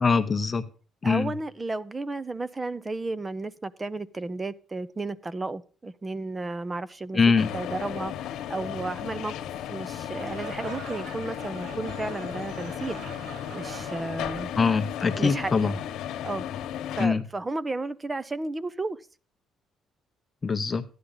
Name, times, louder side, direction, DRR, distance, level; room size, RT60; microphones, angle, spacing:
voice 1, 0.0-0.7 1.0-1.3 7.1-7.5 14.6-15.7 17.0-17.2 20.4-20.8, left 5 dB, 20° left, 0.8 m, -23 dB
voice 2, 1.0-7.2 7.5-9.3 9.6-14.5 15.2-15.7 16.2-16.4 16.9-19.0, right 2 dB, 15° right, 0.5 m, -33 dB
sound 1, 7.4-17.1, left 10 dB, 75° left, 1.2 m, -35 dB
sound 2, 10.1-15.3, right 3 dB, 90° right, 2.8 m, -43 dB
13.5 x 10.0 x 3.9 m
cardioid pair, 165°, 0 cm